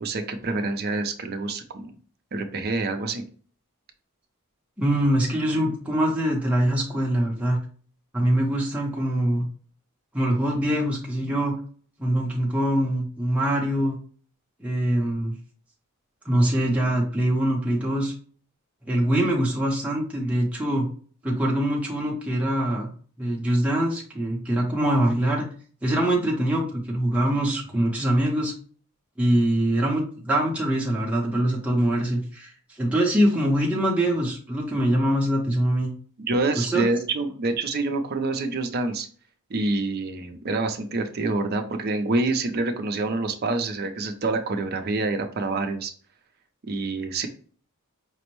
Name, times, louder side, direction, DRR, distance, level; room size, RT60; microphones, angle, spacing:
voice 1, 0.0-1.9 2.3-3.2 36.2-39.1 39.5-45.9 46.6-47.3, right 3 dB, 45° right, 6 dB, 0.5 m, -27 dB
voice 2, 4.8-7.6 8.1-9.4 10.1-11.6 12.0-14.0 14.6-15.3 16.2-18.1 18.8-20.9 21.2-22.9 23.2-25.5 25.8-28.5 29.2-32.5 32.8-35.9 36.6-36.9, right 1 dB, 5° right, -3 dB, 0.6 m, -23 dB
5.2 x 2.0 x 3.0 m, 0.43 s
head